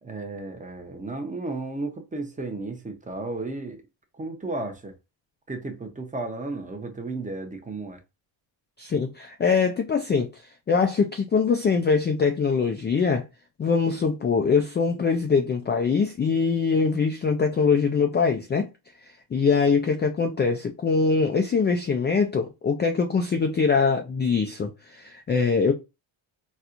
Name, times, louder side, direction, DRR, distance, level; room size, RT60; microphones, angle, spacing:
voice 1, 0.0-3.8 4.1-5.0 5.5-8.0, right 2 dB, 15° right, 0.7 m, -33 dB
voice 2, 8.8-10.4 10.7-13.2 13.6-18.7 19.3-25.7, left 5 dB, 25° left, 0.3 m, -23 dB
4.3 x 2.3 x 2.5 m
cardioid pair, 120°, 49 cm